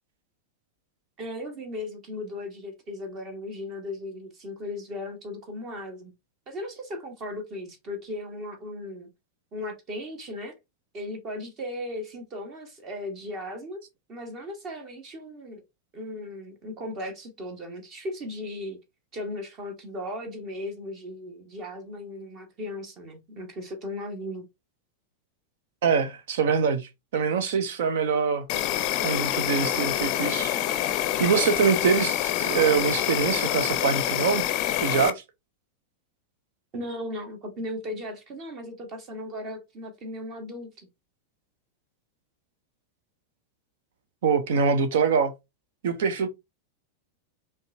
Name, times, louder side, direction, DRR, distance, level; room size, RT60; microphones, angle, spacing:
voice 1, 1.2-6.1 6.5-9.1 9.5-10.5 10.9-13.8 14.1-15.6 15.9-18.8 19.1-24.5 36.7-40.9, left 1 dB, 35° right, 1.2 m, -37 dB
voice 2, 25.8-28.4 29.0-30.5 31.2-34.4 34.8-35.2 44.2-45.3 45.8-46.3, right 6 dB, 55° right, 0.6 m, -24 dB
Insect, 28.5-35.1, left 12 dB, 40° left, 0.5 m, -26 dB
5.2 x 2.4 x 2.6 m
figure-of-eight pair, 90°, 0 cm